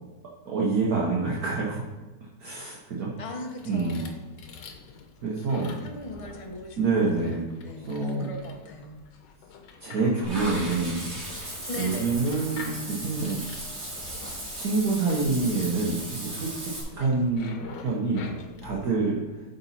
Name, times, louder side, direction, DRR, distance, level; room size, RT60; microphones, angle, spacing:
voice 1, 0.5-1.8 2.4-3.1 3.6-4.0 5.2-5.7 6.8-7.5 7.9-8.3 9.8-11.1 11.4-13.4 14.5-17.5 17.8-18.3 18.6-19.2, right 3 dB, 60° right, -4 dB, 1.4 m, -27 dB
voice 2, 3.2-4.2 5.8-9.0 11.7-12.3 16.9-17.3, left 1 dB, 30° left, 2 dB, 0.7 m, -39 dB
sound 1, 3.4-18.9, left 4 dB, 80° left, 1.4 m, -46 dB
Water / Bathtub (filling or washing), 10.2-16.8, right 1 dB, 40° right, 2.3 m, -36 dB
11.0 x 4.0 x 4.2 m, 1.2 s
omnidirectional pair, 1.9 m